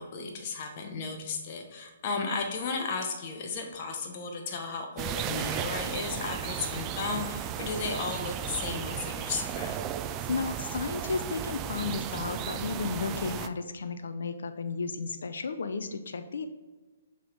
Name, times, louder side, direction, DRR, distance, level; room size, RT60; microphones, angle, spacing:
voice 1, 0.0-9.8, left 4 dB, 45° left, 3 dB, 0.9 m, -34 dB
sound 1, 5.0-13.5, right 9 dB, 25° right, 0.3 m, -35 dB
voice 2, 10.3-16.5, left 4 dB, 70° left, 9 dB, 0.5 m, -33 dB
6.0 x 3.5 x 4.4 m, 1.3 s
hypercardioid pair, 135°, 0 cm